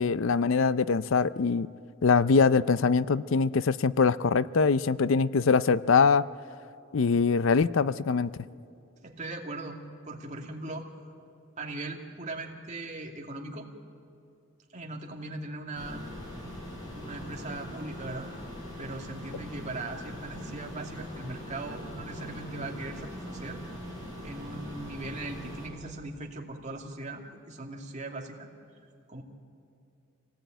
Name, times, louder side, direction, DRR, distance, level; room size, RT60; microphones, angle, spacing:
voice 1, 0.0-1.7 2.0-6.3 6.9-8.3, left 5 dB, 65° left, 16 dB, 0.5 m, -23 dB
voice 2, 9.0-9.8 10.0-10.9 11.6-13.7 14.7-16.0 16.9-18.3 18.8-23.6 24.2-28.5 29.1-29.2, right 2 dB, 35° right, 1 dB, 2.4 m, -39 dB
sound 1, 15.7-25.7, equal, 20° left, 6.9 m, -41 dB
26.5 x 18.5 x 9.1 m, 2.6 s
head